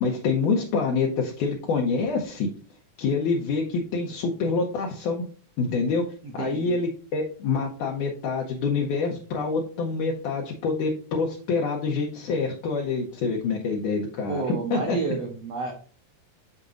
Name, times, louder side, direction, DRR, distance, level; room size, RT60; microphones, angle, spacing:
voice 1, 0.0-2.5 3.0-5.2 5.6-6.0 6.3-15.0, left 4 dB, 75° left, 0 dB, 2.0 m, -26 dB
voice 2, 6.2-6.8 14.3-15.7, right 4 dB, 70° right, 1 dB, 1.5 m, -30 dB
7.0 x 6.5 x 2.5 m, 0.41 s
omnidirectional pair, 4.3 m